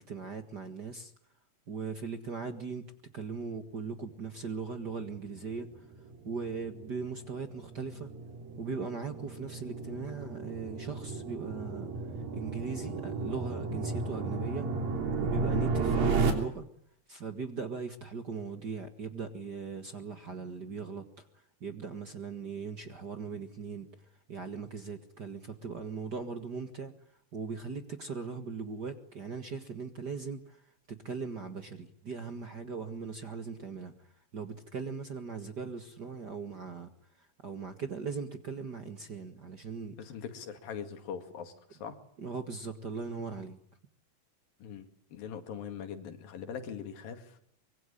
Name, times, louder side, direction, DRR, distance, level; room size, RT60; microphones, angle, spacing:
voice 1, 0.1-1.1 1.7-2.9 3.1-5.8 6.2-8.1 8.6-11.9 12.3-14.7 15.2-16.7 17.1-21.3 21.6-23.9 24.3-26.9 27.3-30.6 30.9-36.9 37.2-39.9 42.2-43.6, right 5 dB, 40° right, 8 dB, 1.6 m, -39 dB
sound 1, 5.2-16.3, right 4 dB, 85° right, 5.0 m, -34 dB
voice 2, 40.0-42.0 44.6-47.4, left 7 dB, 90° left, 8 dB, 4.0 m, -42 dB
24.5 x 23.5 x 9.9 m, 0.68 s
omnidirectional pair, 3.9 m